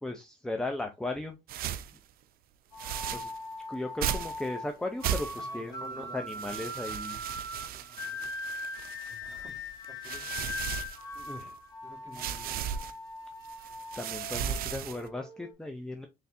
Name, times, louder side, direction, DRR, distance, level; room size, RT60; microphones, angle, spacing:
voice 1, 0.0-1.4 3.1-3.3 3.7-7.2 11.2-11.5 12.1-12.6 14.0-16.1, left 2 dB, 5° left, 0.5 m, -37 dB
sound 1, 1.5-2.0 2.8-3.4 4.0-4.4 5.0-5.6 6.3-9.3 9.8-11.5 12.1-12.9 13.4-15.1, right 9 dB, 60° right, 0.5 m, -36 dB
sound 2, 2.7-15.5, left 2 dB, 25° left, 1.3 m, -41 dB
voice 2, 5.4-6.6 7.4-8.8 9.1-11.0 11.8-12.9, right 2 dB, 20° right, 1.6 m, -55 dB
4.3 x 3.2 x 2.5 m
cardioid pair, 110°, 17 cm